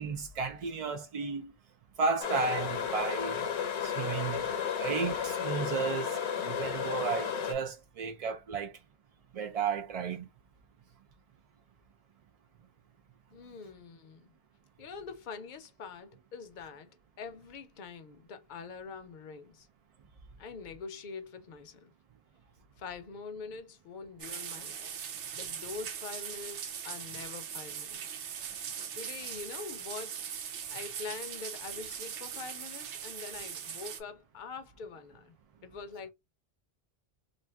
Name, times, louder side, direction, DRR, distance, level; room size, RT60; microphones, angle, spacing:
voice 1, 0.0-1.4 2.0-3.5 3.8-4.5 4.8-8.7 9.3-10.3, right 5 dB, 65° right, 0.3 m, -33 dB
sound 1, 2.2-7.5, left 7 dB, 80° left, 1.0 m, -33 dB
voice 2, 13.3-14.3 14.8-16.9 17.2-19.7 20.4-21.9 22.8-24.9 25.3-28.1 28.9-30.2 30.7-35.4 35.6-36.1, left 5 dB, 55° left, 0.6 m, -44 dB
sound 2, 24.2-34.0, right 8 dB, 85° right, 0.9 m, -40 dB
2.5 x 2.5 x 3.3 m
omnidirectional pair, 1.1 m